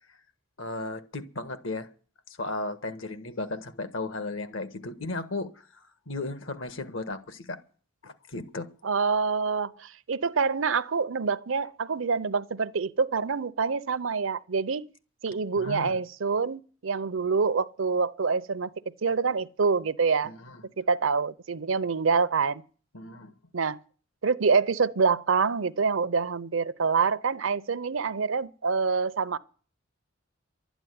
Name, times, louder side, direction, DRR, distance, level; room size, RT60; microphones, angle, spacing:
voice 1, 0.6-1.9 2.4-5.5 6.1-7.6 8.0-8.7 15.6-16.0 20.2-20.4 22.9-23.3, left 2 dB, 70° left, 1.5 m, -35 dB
voice 2, 8.8-14.9 15.2-18.7 19.0-20.3 20.8-22.6 23.5-23.8 24.2-29.4, right 5 dB, 70° right, 0.7 m, -26 dB
12.5 x 9.1 x 9.3 m
head